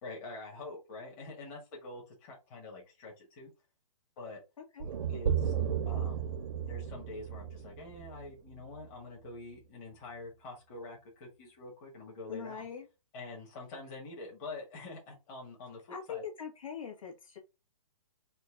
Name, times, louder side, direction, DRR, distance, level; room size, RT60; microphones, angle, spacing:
voice 1, 0.0-3.5 4.2-4.4 5.1-5.5 5.9-6.4 6.7-12.6 13.1-16.2, left 2 dB, 25° left, 1.8 m, -46 dB
sound 1, 4.8-8.9, right 8 dB, 75° right, 0.8 m, -34 dB
voice 2, 12.3-12.9 15.9-17.4, left 7 dB, 65° left, 1.9 m, -42 dB
4.4 x 2.7 x 3.8 m
hypercardioid pair, 165°, 19 cm